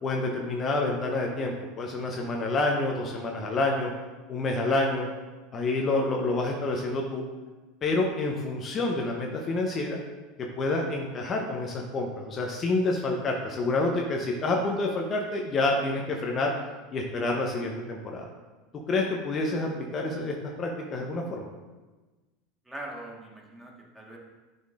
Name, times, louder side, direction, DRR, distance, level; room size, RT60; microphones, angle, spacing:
voice 1, 0.0-3.9 4.3-5.1 5.5-7.2 7.8-10.0 10.6-16.5 16.9-18.3 18.9-21.5, left 2 dB, 35° left, 1 dB, 0.8 m, -28 dB
voice 2, 22.7-24.2, right 1 dB, 10° right, -2 dB, 1.5 m, -42 dB
10.0 x 4.0 x 2.5 m, 1.2 s
hypercardioid pair, 80°, 0 cm